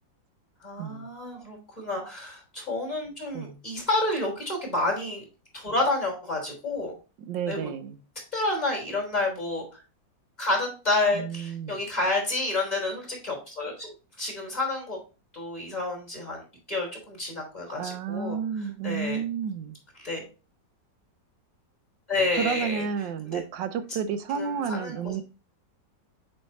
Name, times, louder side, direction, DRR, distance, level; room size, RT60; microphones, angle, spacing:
voice 1, 0.6-5.2 5.5-6.9 7.5-7.7 8.3-9.8 10.4-15.0 15.3-16.4 16.7-18.4 18.8-19.2 20.0-20.2 22.1-22.8 23.3-23.4 24.4-25.1, left 2 dB, 20° left, -1 dB, 3.3 m, -29 dB
voice 2, 7.3-8.0 11.1-11.8 17.8-19.8 22.3-25.2, right 7 dB, 80° right, 9 dB, 1.3 m, -31 dB
7.9 x 3.3 x 4.1 m, 0.33 s
omnidirectional pair, 2.0 m